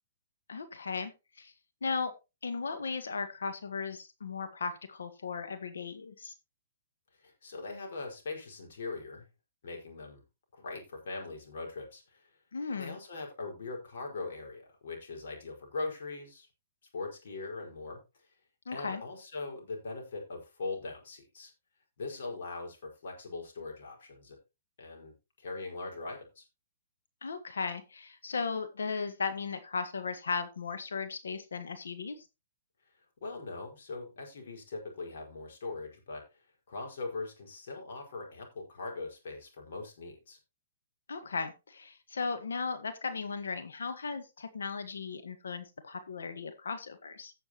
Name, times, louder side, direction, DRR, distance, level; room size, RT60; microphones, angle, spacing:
voice 1, 0.5-1.1 1.4-1.5 1.8-2.1 2.4-6.3 12.5-13.0 18.6-19.0 27.2-32.2 41.1-47.3, left 4 dB, 85° left, 9 dB, 1.5 m, -36 dB
voice 2, 7.2-9.3 9.6-10.2 10.5-12.3 12.7-16.5 16.9-18.0 18.3-18.4 18.7-21.5 22.0-24.4 24.8-26.4 33.2-40.4, left 3 dB, 65° left, 0 dB, 5.1 m, -41 dB
16.5 x 7.0 x 3.0 m, 0.27 s
hypercardioid pair, 140°, 0 cm